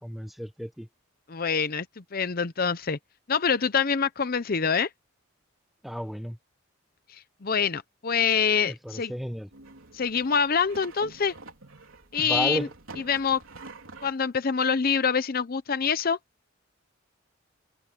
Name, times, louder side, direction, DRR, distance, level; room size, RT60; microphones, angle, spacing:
voice 1, 0.0-0.9 5.8-6.4 8.6-9.5 12.2-12.7, equal, ahead, 1.2 m, -32 dB
voice 2, 1.3-3.0 3.3-4.9 7.1-9.1 9.9-11.3 12.1-12.7 13.0-13.4 14.0-16.2, left 6 dB, 45° left, 0.7 m, -25 dB
sound 1, 9.5-14.1, right 3 dB, 80° right, 3.9 m, -46 dB
head